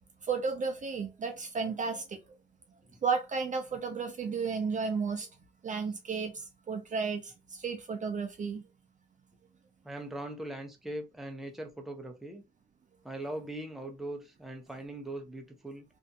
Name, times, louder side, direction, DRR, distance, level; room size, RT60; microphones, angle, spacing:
voice 1, 0.2-2.2 3.0-5.3 5.6-8.6, right 5 dB, 40° right, 0.5 m, -33 dB
voice 2, 9.8-12.4 13.0-15.8, right 1 dB, ahead, 0.7 m, -40 dB
2.6 x 2.6 x 2.3 m
cardioid pair, 90°, 20 cm